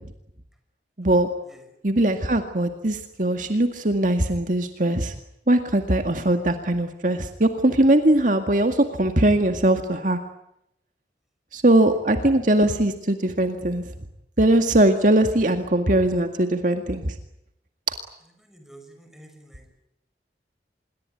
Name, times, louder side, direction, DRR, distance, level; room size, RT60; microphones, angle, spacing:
voice 1, 1.0-1.3 1.8-5.1 5.5-10.2 11.5-13.8 14.4-17.2, right 1 dB, 45° right, 6 dB, 2.0 m, -20 dB
voice 2, 18.4-19.7, right 1 dB, ahead, 5 dB, 5.7 m, -49 dB
26.5 x 22.5 x 9.3 m, 0.80 s
head